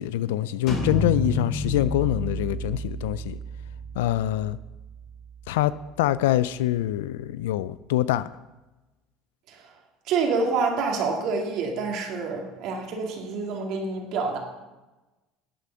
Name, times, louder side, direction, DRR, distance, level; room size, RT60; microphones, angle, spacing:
voice 1, 0.0-3.4 4.0-4.6 5.5-8.3, left 14 dB, 90° left, 16 dB, 0.3 m, -25 dB
sound 1, 0.7-6.3, equal, 65° left, 4.5 m, -32 dB
voice 2, 10.1-14.4, right 4 dB, 65° right, 1 dB, 2.3 m, -27 dB
11.0 x 8.4 x 5.7 m, 1.1 s
supercardioid pair, 105°, 0 cm